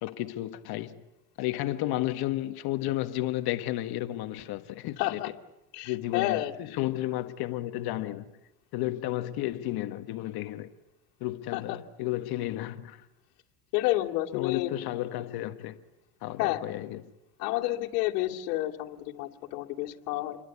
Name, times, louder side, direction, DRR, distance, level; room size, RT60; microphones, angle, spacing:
voice 1, 0.0-0.9 1.4-5.2 5.9-8.3 8.7-10.7 11.2-13.0 14.3-15.8 16.2-17.0, left 15 dB, 50° left, 1.5 m, -32 dB
voice 2, 5.0-5.3 5.7-6.5 11.5-11.8 13.7-14.7 16.4-16.6 17.4-20.4, left 16 dB, 80° left, 2.5 m, -30 dB
29.0 x 23.0 x 8.4 m
supercardioid pair, 135°, 47 cm